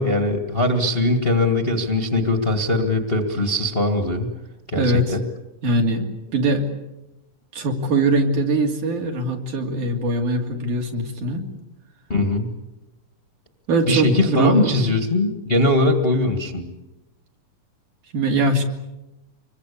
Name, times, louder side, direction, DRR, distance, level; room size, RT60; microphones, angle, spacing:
voice 1, 0.0-4.3 4.7-5.2 12.1-12.5 13.9-16.6, left 2 dB, 25° left, 6 dB, 1.4 m, -20 dB
voice 2, 4.8-5.2 5.6-6.7 7.5-11.5 13.7-14.9 15.2-15.3 18.1-18.6, right 2 dB, 70° right, 2 dB, 4.4 m, -22 dB
26.0 x 22.5 x 8.5 m, 0.99 s
omnidirectional pair, 3.7 m